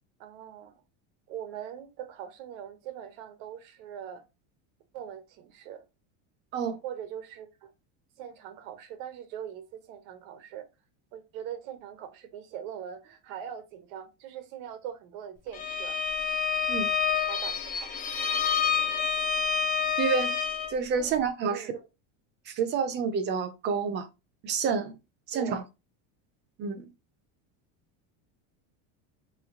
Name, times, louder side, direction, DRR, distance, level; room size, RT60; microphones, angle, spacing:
voice 1, 0.2-0.8 1.3-4.2 4.9-5.8 6.8-7.7 8.2-10.7 11.1-16.0 17.2-18.3 20.9-21.1 21.5-21.7 25.3-25.6, right 9 dB, 75° right, 1.2 m, -42 dB
Bowed string instrument, 15.5-20.8, left 6 dB, 20° left, 0.4 m, -28 dB
voice 2, 20.0-20.3 20.7-21.7 22.5-24.1 24.4-25.0 25.3-25.6 26.6-26.9, right 6 dB, 25° right, 0.5 m, -28 dB
4.7 x 3.1 x 3.6 m
cardioid pair, 175°, 40 cm